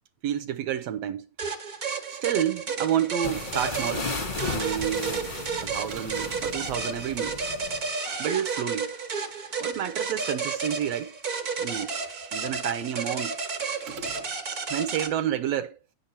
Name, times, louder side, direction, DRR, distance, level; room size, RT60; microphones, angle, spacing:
voice 1, 0.2-1.2 2.1-4.1 4.5-5.3 5.6-7.4 8.2-8.9 9.6-11.1 11.6-11.9 12.3-13.4 14.7-15.8, right 10 dB, 75° right, 1.6 m, -29 dB
sound 1, 1.4-15.1, right 5 dB, 40° right, 1.3 m, -32 dB
sound 2, 3.2-7.9, left 3 dB, 35° left, 0.8 m, -35 dB
sound 3, 5.9-6.7 13.8-14.4, right 5 dB, 60° right, 1.8 m, -42 dB
voice 2, 11.5-12.4 13.6-14.6, left 4 dB, 70° left, 0.9 m, -54 dB
10.5 x 7.8 x 4.3 m
omnidirectional pair, 3.3 m